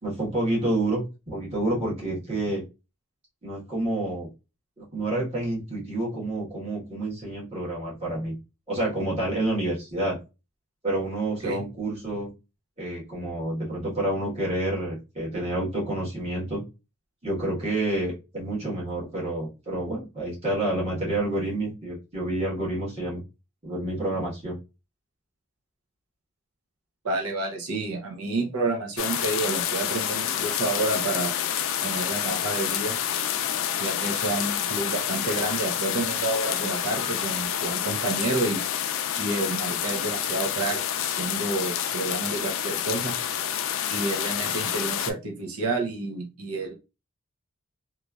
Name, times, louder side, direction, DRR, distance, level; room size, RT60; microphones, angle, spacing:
voice 1, 0.0-2.6 3.4-4.3 4.8-8.4 8.7-10.2 10.8-12.3 12.8-16.6 17.2-23.2 23.6-24.6, right 1 dB, 30° right, -6 dB, 1.3 m, -29 dB
voice 2, 27.0-31.3 31.8-33.0 33.8-38.6 39.2-43.1 43.9-46.7, right 2 dB, 90° right, 2 dB, 0.7 m, -29 dB
sound 1, 29.0-45.1, left 9 dB, 65° left, 0.3 m, -28 dB
3.0 x 2.4 x 2.3 m, 0.28 s
head